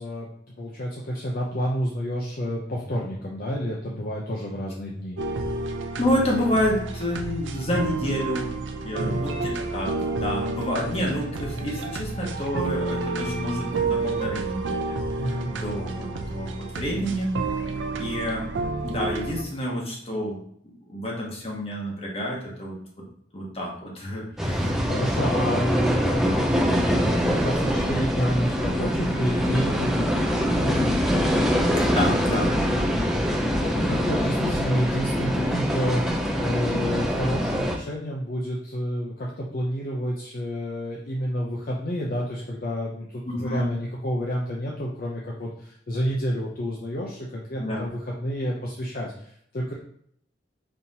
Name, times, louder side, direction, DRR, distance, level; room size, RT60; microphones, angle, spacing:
voice 1, 0.0-5.2 9.0-9.2 15.2-15.5 24.5-31.0 32.7-49.7, equal, 50° left, -2 dB, 0.5 m, -29 dB
sound 1, 5.2-19.4, right 3 dB, 80° right, 0.4 m, -30 dB
voice 2, 6.0-8.5 8.8-17.4 18.0-18.5 18.8-20.4 20.6-22.8 23.3-24.8 31.9-32.5 43.3-43.7 47.6-47.9, equal, 35° left, -2 dB, 1.1 m, -29 dB
sound 2, 24.4-37.8, equal, ahead, 0.4 m, -24 dB
5.5 x 2.8 x 2.7 m, 0.68 s
head